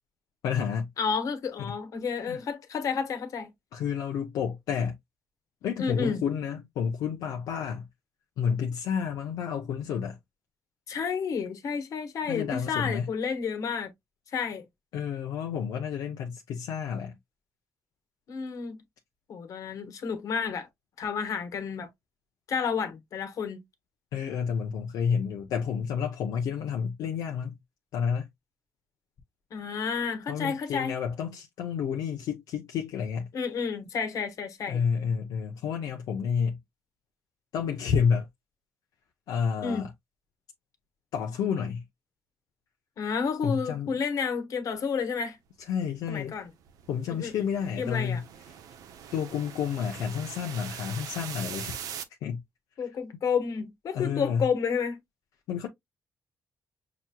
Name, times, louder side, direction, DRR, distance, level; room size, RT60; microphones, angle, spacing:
voice 1, 0.4-0.9 1.6-1.7 2.3-2.4 3.7-5.0 5.6-7.8 8.4-10.2 12.3-13.1 14.9-17.2 24.1-27.6 27.9-28.3 30.3-33.3 34.7-36.6 37.5-38.3 39.3-39.9 41.1-41.8 43.4-43.9 45.7-46.3 46.9-48.2 49.1-51.8 52.2-52.4 53.9-54.5 55.5-55.7, left 7 dB, 85° left, 0.7 m, -30 dB
voice 2, 1.0-3.5 5.8-6.2 10.9-13.9 14.3-14.6 18.3-18.8 19.3-20.7 21.0-21.9 22.5-23.6 29.5-31.0 33.3-34.8 39.6-39.9 43.0-45.4 46.1-46.5 47.2-47.5 47.8-48.2 52.8-55.0, left 6 dB, 65° left, 1.2 m, -30 dB
sound 1, 46.0-52.0, right 9 dB, 85° right, 0.6 m, -42 dB
6.0 x 2.9 x 2.2 m
cardioid pair, 95°, 6 cm